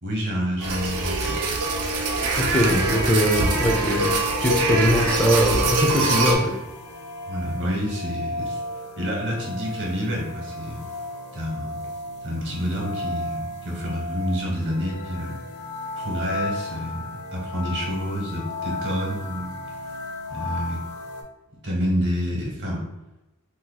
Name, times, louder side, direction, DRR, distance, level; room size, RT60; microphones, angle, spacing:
voice 1, 0.0-1.6 7.3-8.6 9.0-10.9 11.3-11.8 12.2-15.4 15.9-19.5 20.3-20.8 21.6-22.8, equal, 55° right, -2 dB, 1.0 m, -28 dB
sound 1, 0.6-6.4, right 2 dB, 80° right, 0.5 m, -24 dB
voice 2, 2.4-6.5, equal, 5° left, -2 dB, 0.4 m, -21 dB
sound 2, 3.4-21.2, left 1 dB, 75° left, 0.6 m, -34 dB
2.8 x 2.2 x 3.8 m, 1.0 s
head